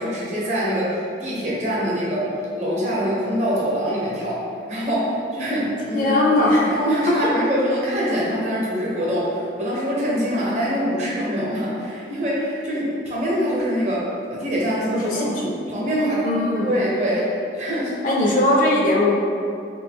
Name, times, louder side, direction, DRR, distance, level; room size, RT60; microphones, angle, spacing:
voice 1, 0.0-2.3 2.6-6.2 6.5-15.2 15.7-16.2 16.6-17.3 17.5-17.9, equal, 40° right, -6 dB, 0.8 m, -24 dB
voice 2, 5.9-6.6 14.9-15.5 16.2-16.7 18.0-19.1, left 2 dB, 45° left, -3 dB, 0.5 m, -19 dB
3.0 x 2.7 x 3.4 m, 2.6 s
head